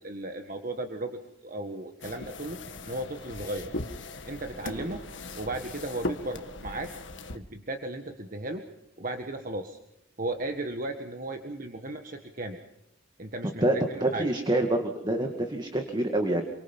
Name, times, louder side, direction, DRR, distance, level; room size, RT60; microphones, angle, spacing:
voice 1, 0.0-2.6 2.8-3.7 4.3-5.0 5.3-6.9 7.3-8.6 9.0-9.8 10.2-12.6 13.2-14.3, right 2 dB, 40° right, 5 dB, 1.6 m, -35 dB
sound 1, 2.0-7.4, left 2 dB, 60° left, 1.7 m, -39 dB
voice 2, 14.0-16.4, right 1 dB, 20° right, 4 dB, 2.0 m, -26 dB
28.0 x 24.5 x 5.4 m, 0.84 s
head